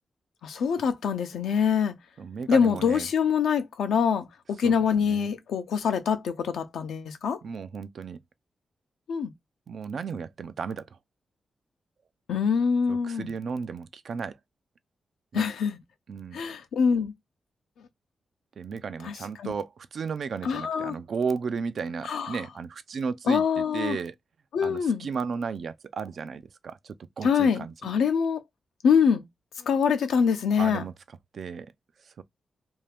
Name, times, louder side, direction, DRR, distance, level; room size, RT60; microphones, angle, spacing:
voice 1, 0.4-1.9 2.5-7.4 9.1-9.3 12.3-13.3 15.3-15.8 16.3-17.1 19.0-19.5 20.4-21.0 22.0-22.4 23.3-24.0 24.5-25.1 27.2-28.4 28.8-29.2 29.6-30.8, left 6 dB, 90° left, 0.6 m, -25 dB
voice 2, 2.2-3.1 4.6-5.3 7.4-8.2 9.7-10.9 12.9-14.4 15.3-15.5 16.1-16.4 18.6-24.1 24.6-27.7 30.6-30.9 31.3-31.7 32.2-32.3, right 5 dB, 70° right, 0.4 m, -34 dB
2.7 x 2.4 x 3.3 m
cardioid pair, 60°, 0 cm